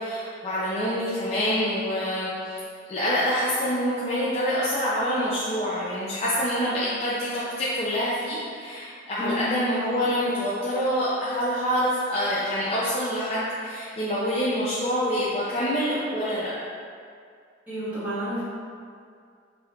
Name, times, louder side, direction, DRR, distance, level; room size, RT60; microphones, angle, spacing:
voice 1, 0.0-2.6 2.9-16.5, equal, 30° left, -9 dB, 0.4 m, -26 dB
voice 2, 17.7-18.4, equal, 10° right, -13 dB, 1.2 m, -30 dB
5.1 x 3.1 x 2.4 m, 2.3 s
head